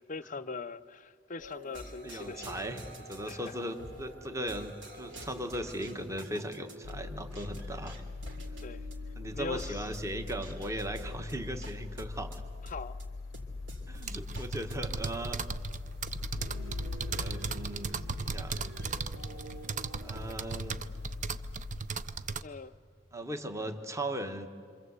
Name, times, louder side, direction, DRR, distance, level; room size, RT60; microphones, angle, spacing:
voice 1, 0.0-2.8 3.3-3.6 8.6-8.8 9.3-9.9 12.6-13.0 22.4-22.7, left 4 dB, 40° left, 0.6 m, -41 dB
sound 1, 1.4-20.4, equal, 65° right, 3.1 m, -48 dB
voice 2, 2.0-8.0 9.2-12.4 13.9-15.4 16.3-16.8 17.1-19.1 20.0-20.8 23.1-24.5, right 1 dB, 15° right, 1.2 m, -38 dB
sound 2, 6.8-21.8, left 3 dB, 85° left, 0.6 m, -42 dB
sound 3, 13.9-22.4, right 4 dB, 40° right, 0.6 m, -37 dB
27.5 x 25.0 x 8.1 m
head